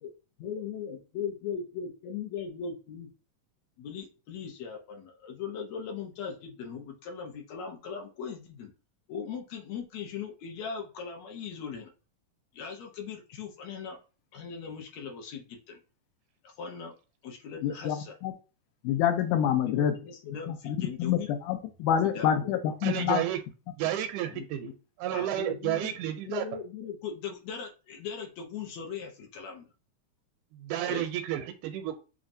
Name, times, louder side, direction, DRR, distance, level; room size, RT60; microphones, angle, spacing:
voice 1, 0.4-3.1 3.8-8.7 9.1-11.9 12.5-14.0 14.3-15.8 16.4-16.9 17.2-18.2 19.7-21.3 22.1-22.5 24.3-24.7 25.1-26.0 26.2-29.7 30.9-31.1, left 6 dB, 70° left, 2 dB, 1.9 m, -39 dB
voice 2, 17.6-18.0 18.2-18.3 18.8-19.9 20.5-23.2, left 9 dB, 90° left, 7 dB, 2.1 m, -27 dB
voice 3, 22.8-23.4 23.8-24.7 25.0-26.5 30.5-32.0, right 12 dB, 85° right, 8 dB, 2.0 m, -31 dB
7.2 x 2.4 x 2.6 m, 0.33 s
omnidirectional pair, 3.5 m